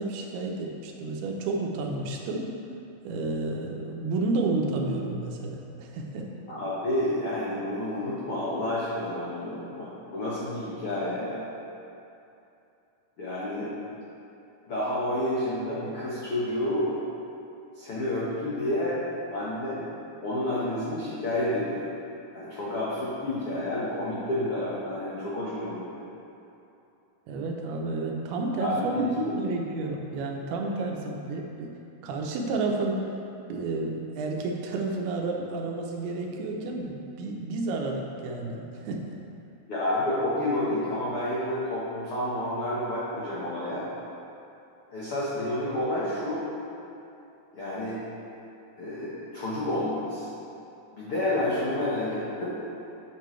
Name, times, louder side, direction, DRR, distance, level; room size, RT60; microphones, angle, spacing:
voice 1, 0.0-2.5 3.0-6.3 27.3-31.7 32.0-33.0 33.5-39.2, right 3 dB, 85° right, 1 dB, 2.8 m, -31 dB
voice 2, 6.5-11.4 13.2-13.7 14.7-16.9 17.7-19.0 19.3-19.9 20.2-21.9 22.3-25.8 28.6-29.3 39.7-43.9 44.9-46.5 47.5-48.0 48.8-50.3 50.9-52.6, left 1 dB, 80° left, -9 dB, 1.2 m, -30 dB
8.8 x 6.8 x 3.2 m, 2.8 s
omnidirectional pair, 4.4 m